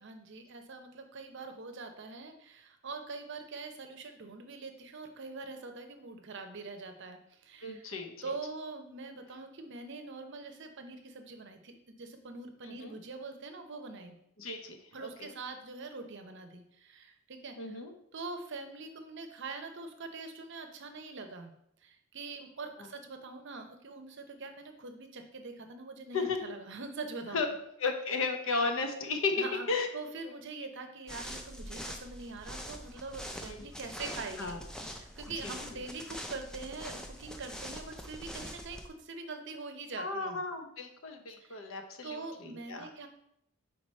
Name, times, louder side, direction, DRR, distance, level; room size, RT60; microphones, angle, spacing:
voice 1, 0.0-7.9 8.2-14.2 14.9-17.8 18.1-21.5 21.8-27.4 29.4-29.7 29.9-34.6 34.8-40.4 41.4-41.7 42.0-43.1, right 3 dB, 50° right, 6 dB, 0.7 m, -43 dB
voice 2, 7.6-8.1 12.6-12.9 14.4-15.3 17.6-17.9 26.1-26.4 27.3-27.5 27.8-29.3 29.7-29.9 33.4-33.6 34.4-34.6 35.4-35.5 40.0-42.9, left 4 dB, 60° left, 5 dB, 0.8 m, -34 dB
sound 1, 31.1-38.9, equal, 5° left, 0.4 m, -44 dB
4.8 x 4.6 x 4.2 m, 0.74 s
head